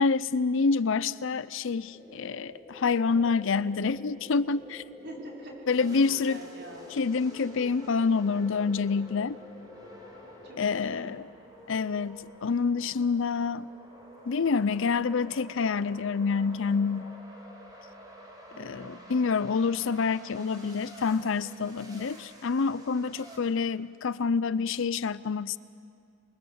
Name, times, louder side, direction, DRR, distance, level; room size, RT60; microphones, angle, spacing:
voice 1, 0.0-4.8 5.7-6.4 6.9-9.4 10.6-11.3 11.7-13.7 14.3-17.1 18.6-25.6, left 5 dB, 65° left, 17 dB, 0.5 m, -27 dB
sound 1, 1.8-10.7, left 2 dB, 10° left, 4.2 m, -49 dB
voice 2, 5.0-6.9 10.4-11.2 18.5-19.0, right 1 dB, 55° right, -2 dB, 5.4 m, -45 dB
sound 2, 5.7-23.4, equal, 20° right, 4.7 m, -50 dB
28.0 x 22.5 x 7.9 m, 2.4 s
head